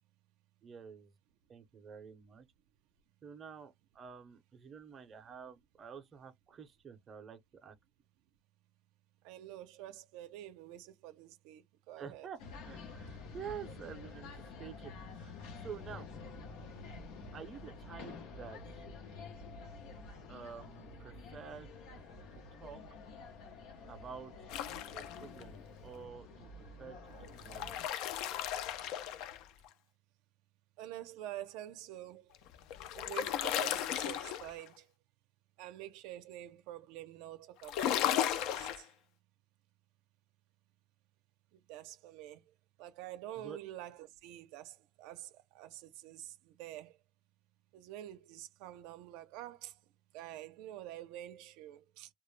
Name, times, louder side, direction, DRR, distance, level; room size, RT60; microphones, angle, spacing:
voice 1, 0.6-1.1 1.5-2.5 3.2-7.7 12.0-12.4 12.7-16.1 17.3-18.8 20.3-21.7 22.6-22.8 23.9-24.3 24.8-25.6 25.8-27.8 38.8-38.9 43.4-43.6, right 7 dB, 30° right, 0.5 m, -49 dB
voice 2, 9.2-12.3 30.8-32.3 33.0-34.9 35.6-38.9 41.5-42.4 42.8-47.0 47.7-49.8 50.1-52.1, right 13 dB, 85° right, 0.4 m, -47 dB
sound 1, 12.4-27.9, left 3 dB, 90° left, 0.8 m, -49 dB
sound 2, 24.5-25.4 27.2-29.7 32.3-34.7 37.6-38.8, left 11 dB, 70° left, 0.3 m, -35 dB
2.2 x 2.0 x 3.1 m
cardioid pair, 165°, 0 cm